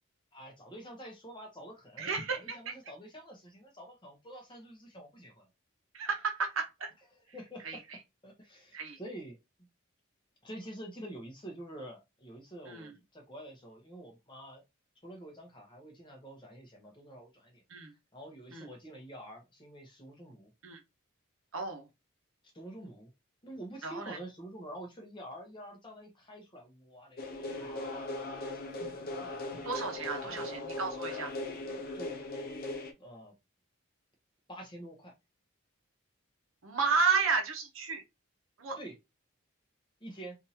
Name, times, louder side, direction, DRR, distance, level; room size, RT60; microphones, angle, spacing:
voice 1, 0.3-5.5 7.3-7.8 8.2-9.4 10.4-14.6 15.0-17.6 18.1-20.5 22.4-23.1 23.4-28.8 29.2-29.9 30.2-30.6 31.6-32.2 33.0-33.3 34.5-35.1 38.7-38.9 40.0-40.4, right 1 dB, 20° left, 1.0 m, -47 dB
voice 2, 2.0-2.7 5.9-6.9 7.6-7.8 8.7-9.0 12.7-12.9 17.7-17.9 18.5-18.7 20.6-20.8 21.5-21.9 23.8-24.2 29.6-31.3 36.6-38.0 38.6-38.8, right 5 dB, 75° right, 0.9 m, -32 dB
sound 1, 27.2-32.9, left 2 dB, 45° left, 0.7 m, -39 dB
3.6 x 2.7 x 2.8 m
head